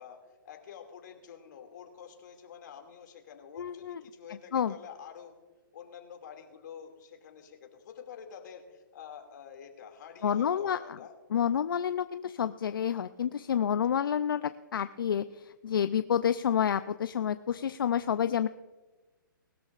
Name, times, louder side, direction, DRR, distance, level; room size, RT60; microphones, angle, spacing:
voice 1, 0.0-5.3 5.7-11.1, left 8 dB, 60° left, 3 dB, 2.4 m, -48 dB
voice 2, 3.6-4.0 4.5-4.7 10.2-11.0 11.3-18.5, left 8 dB, 80° left, 12 dB, 0.5 m, -29 dB
20.5 x 13.0 x 2.5 m, 1.2 s
hypercardioid pair, 140°, 11 cm